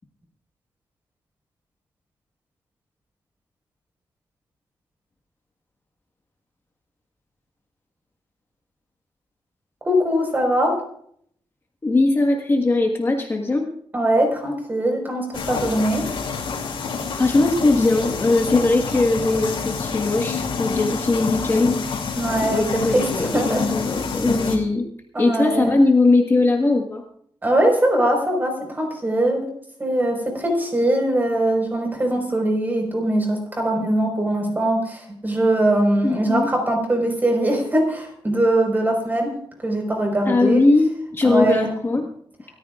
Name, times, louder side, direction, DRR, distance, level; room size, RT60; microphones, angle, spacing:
voice 1, 9.8-10.8 13.9-16.1 22.1-23.1 23.3-23.6 25.1-25.8 27.4-29.5 29.8-39.3 39.6-40.6 41.2-41.7, right 1 dB, 20° right, 2 dB, 4.7 m, -21 dB
voice 2, 11.8-13.7 17.2-22.1 22.4-24.9 25.2-27.0 36.0-36.5 40.3-42.1, left 2 dB, 25° left, 2 dB, 1.6 m, -20 dB
sound 1, 15.3-24.6, left 5 dB, 85° left, 3.4 m, -27 dB
28.0 x 14.0 x 2.5 m, 0.65 s
wide cardioid pair, 145°, 9 cm